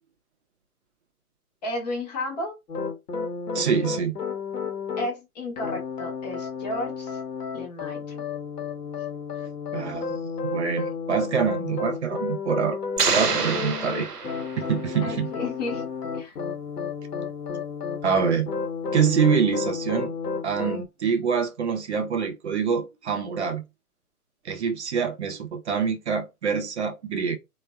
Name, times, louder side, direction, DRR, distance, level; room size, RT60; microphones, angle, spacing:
voice 1, 1.6-2.5 5.0-7.2 7.5-8.2 15.0-15.9 16.1-16.4, left 1 dB, 30° left, 0.6 m, -33 dB
sound 1, 2.7-5.1 5.6-20.9, left 5 dB, 90° left, 0.7 m, -32 dB
voice 2, 3.5-4.2 9.5-12.8 13.1-14.1 14.7-15.3 18.0-18.5 18.9-20.1 20.4-23.6 24.4-27.4, right 6 dB, 50° right, 0.5 m, -25 dB
sound 2, 13.0-14.9, right 5 dB, 90° right, 0.8 m, -26 dB
3.3 x 2.1 x 2.2 m
figure-of-eight pair, 125°, 46 cm